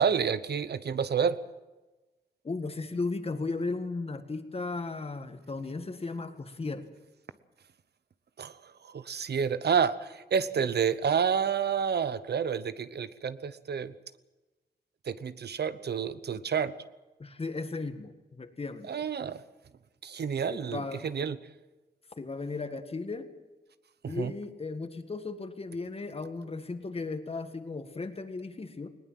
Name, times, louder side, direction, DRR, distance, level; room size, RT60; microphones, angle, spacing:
voice 1, 0.0-1.4 8.4-8.5 8.8-13.9 15.1-16.7 18.9-19.4 20.0-21.4 24.0-24.3, right 7 dB, 70° right, 14 dB, 1.0 m, -29 dB
voice 2, 2.4-6.9 10.6-10.7 17.2-18.9 20.5-21.1 22.2-23.3 24.1-28.9, left 3 dB, 35° left, 8 dB, 1.9 m, -36 dB
20.5 x 19.5 x 7.6 m, 1.2 s
wide cardioid pair, 145°, 17 cm